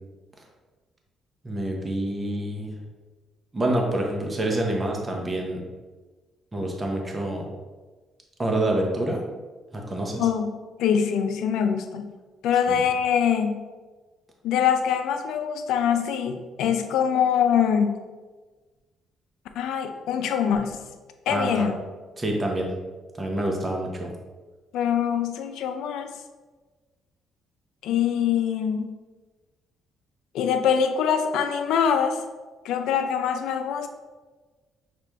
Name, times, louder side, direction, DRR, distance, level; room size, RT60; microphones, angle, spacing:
voice 1, 1.4-2.8 3.5-5.6 6.5-7.5 8.4-9.2 9.7-10.3 12.7-12.8 21.3-21.7 22.2-22.7 23.1-24.1, right 1 dB, 20° right, 0 dB, 0.7 m, -27 dB
voice 2, 10.2-12.1 12.4-13.7 14.4-18.0 19.6-20.8 21.3-21.7 24.7-26.1 27.8-28.9 30.3-32.2 32.6-33.9, left 8 dB, 90° left, 7 dB, 0.4 m, -24 dB
5.9 x 2.5 x 3.4 m, 1.3 s
cardioid pair, 135°, 0 cm